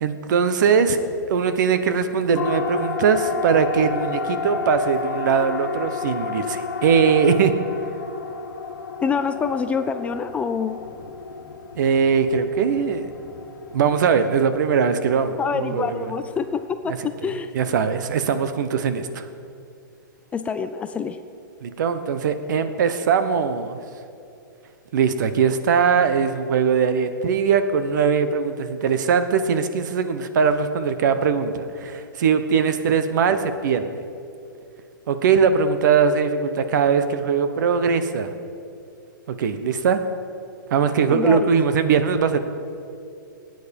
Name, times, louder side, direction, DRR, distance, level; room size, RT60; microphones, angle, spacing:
voice 1, 0.0-1.0 1.3-7.5 11.8-13.1 13.7-16.1 16.9-17.0 17.2-17.3 17.5-19.3 21.6-23.8 24.9-34.0 35.1-38.3 39.3-40.0 40.7-42.4, right 6 dB, 60° right, 10 dB, 1.1 m, -21 dB
Siren, 2.4-16.7, left 5 dB, 85° left, 1.3 m, -32 dB
voice 2, 9.0-10.8 15.4-17.5 20.3-21.2 41.1-41.5, left 6 dB, 10° left, 9 dB, 0.3 m, -26 dB
16.5 x 9.3 x 5.4 m, 2.6 s
hypercardioid pair, 150°, 11 cm